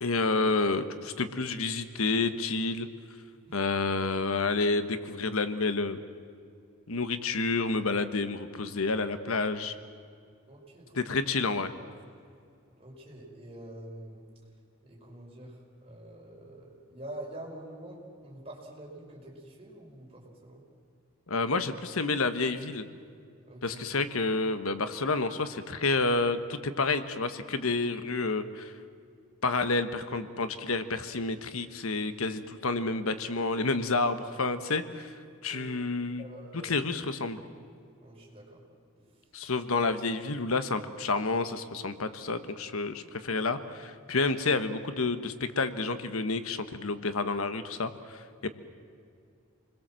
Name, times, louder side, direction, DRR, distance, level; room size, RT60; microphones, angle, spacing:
voice 1, 0.0-2.9 3.5-6.0 6.9-9.7 10.9-11.7 21.3-22.9 23.6-28.7 29.4-36.2 36.5-37.4 39.3-48.5, left 3 dB, 75° left, 11 dB, 1.2 m, -29 dB
voice 2, 10.5-11.2 12.7-14.2 14.8-20.6 23.5-23.8 35.5-35.7 36.2-36.8 38.0-38.6, right 1 dB, 25° right, -3 dB, 5.6 m, -46 dB
28.5 x 21.0 x 7.6 m, 2.3 s
head